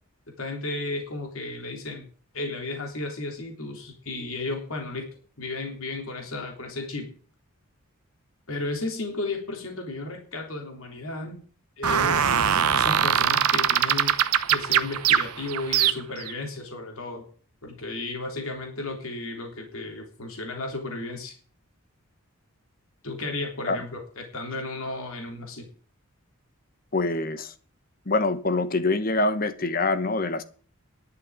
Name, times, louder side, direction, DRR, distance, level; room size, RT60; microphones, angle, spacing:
voice 1, 0.4-2.1 2.3-5.1 5.4-7.1 8.5-11.4 11.8-14.1 14.5-17.3 17.6-21.4 23.0-25.7, left 2 dB, 70° left, 3.5 m, -34 dB
sound 1, 11.8-16.3, right 8 dB, 90° right, 0.9 m, -22 dB
voice 2, 26.9-27.5 28.0-30.4, left 2 dB, 40° left, 1.1 m, -25 dB
11.0 x 6.9 x 9.5 m
head